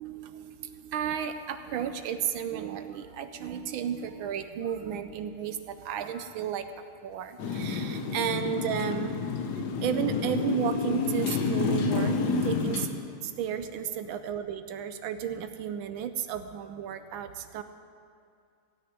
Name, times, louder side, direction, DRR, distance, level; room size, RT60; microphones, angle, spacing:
voice 1, 0.0-6.7 7.0-9.2 9.8-12.1 12.4-12.9 13.2-17.6, right 9 dB, 75° right, 9 dB, 1.4 m, -33 dB
Motorcycle, 7.4-12.9, left 4 dB, 55° left, 1.3 m, -29 dB
16.0 x 6.4 x 9.4 m, 2.3 s
omnidirectional pair, 2.4 m